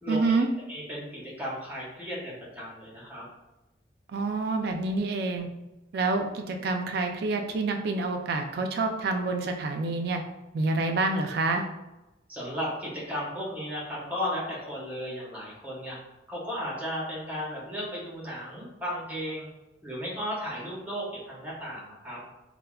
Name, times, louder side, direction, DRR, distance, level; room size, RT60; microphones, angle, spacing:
voice 1, 0.1-0.5 4.1-5.5 5.9-10.2 10.5-11.6, right 3 dB, 60° right, 5 dB, 0.3 m, -27 dB
voice 2, 0.7-3.2 12.3-16.0 16.3-19.5 19.8-22.2, equal, 10° right, -5 dB, 0.8 m, -35 dB
3.3 x 2.1 x 2.3 m, 0.99 s
head